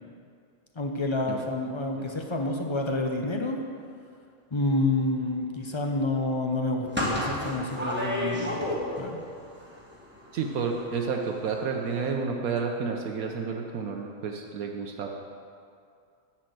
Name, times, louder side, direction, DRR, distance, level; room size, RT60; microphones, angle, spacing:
voice 1, 0.8-3.6 4.5-8.6 9.0-9.2, left 2 dB, 35° left, 2 dB, 0.4 m, -28 dB
sound 1, 6.9-9.3 9.5-11.1 11.4-11.6 11.8-12.0, left 1 dB, 10° right, 1.3 m, -31 dB
voice 2, 10.3-15.2, right 5 dB, 75° right, 2 dB, 1.2 m, -30 dB
10.5 x 4.4 x 7.8 m, 2.3 s
omnidirectional pair, 1.5 m